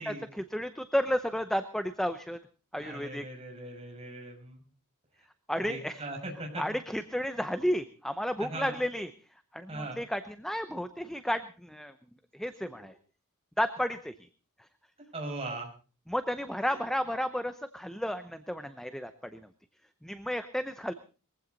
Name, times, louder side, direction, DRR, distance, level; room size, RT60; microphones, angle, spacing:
voice 1, 0.0-2.4 2.7-3.3 5.5-6.0 6.6-9.1 9.5-11.9 12.3-12.9 13.6-14.1 16.1-19.4 20.0-20.9, equal, ahead, 10 dB, 0.7 m, -32 dB
voice 2, 2.8-4.6 5.7-6.6 8.4-8.7 9.7-10.0 15.1-15.7 16.7-16.8, right 2 dB, 25° right, 0 dB, 6.3 m, -39 dB
21.5 x 15.5 x 4.0 m, 0.35 s
head